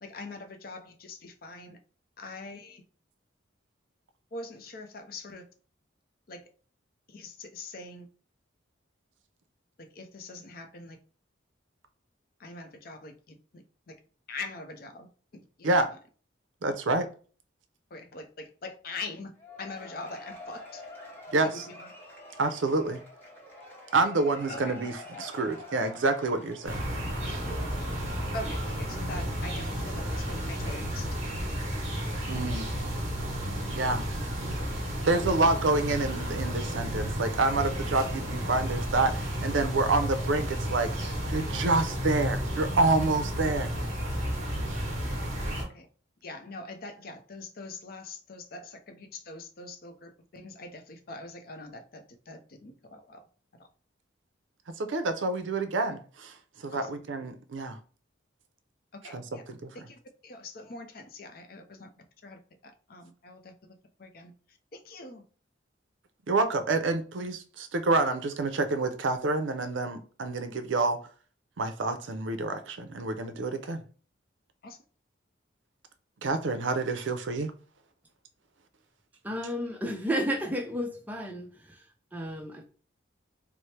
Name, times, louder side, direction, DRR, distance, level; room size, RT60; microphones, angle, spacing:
voice 1, 0.0-1.8 2.2-2.8 4.3-5.4 6.3-6.4 7.1-8.1 9.8-11.0 12.4-14.0 14.3-15.1 15.3-16.0 17.9-20.8 21.4-21.9 24.5-24.8 28.3-31.2 35.1-35.3 45.6-45.9 46.2-53.3 53.6-53.7 56.7-57.0 58.9-59.4 59.7-61.9 62.2-63.5 64.0-65.2 74.6-74.8, left 3 dB, 50° left, 0.5 m, -43 dB
voice 2, 16.6-17.1 21.3-21.6 22.4-23.0 23.9-26.8 32.3-32.7 33.8-34.1 35.1-40.9 41.3-43.7 54.8-56.3 56.6-57.8 59.1-59.2 59.5-59.7 66.3-71.0 71.6-73.8 76.2-77.5, right 3 dB, 75° right, 0.5 m, -28 dB
Cheering / Applause / Crowd, 19.4-28.3, left 2 dB, 10° left, 0.9 m, -47 dB
sound 1, 26.7-45.6, equal, 35° right, 1.1 m, -32 dB
voice 3, 79.2-82.6, equal, 10° right, 0.5 m, -33 dB
4.3 x 2.0 x 3.2 m
head